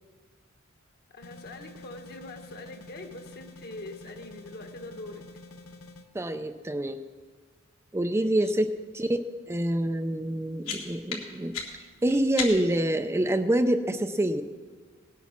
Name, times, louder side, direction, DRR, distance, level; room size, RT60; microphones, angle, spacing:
voice 1, 1.1-5.2 8.2-8.5, left 2 dB, 50° left, 5 dB, 1.3 m, -43 dB
sound 1, 1.2-6.1, left 2 dB, 65° left, 0.8 m, -48 dB
voice 2, 6.1-7.0 7.9-9.2 9.5-11.5 12.0-14.4, right 1 dB, 15° right, 8 dB, 0.4 m, -26 dB
sound 2, 10.2-12.9, left 6 dB, 85° left, 2.3 m, -37 dB
18.5 x 8.4 x 5.9 m, 1.5 s
head